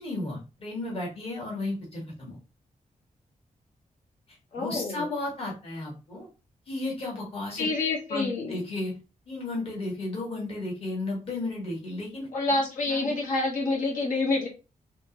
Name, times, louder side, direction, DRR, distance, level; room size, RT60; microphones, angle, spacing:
voice 1, 0.0-2.4 4.5-6.3 6.7-7.7 8.1-8.9 9.3-12.3 12.9-13.1, left 2 dB, 45° left, -2 dB, 1.7 m, -33 dB
voice 2, 4.5-5.0 7.6-8.6 12.3-14.5, left 3 dB, 70° left, -3 dB, 1.4 m, -27 dB
4.3 x 3.0 x 2.9 m, 0.31 s
wide cardioid pair, 180°, 14 cm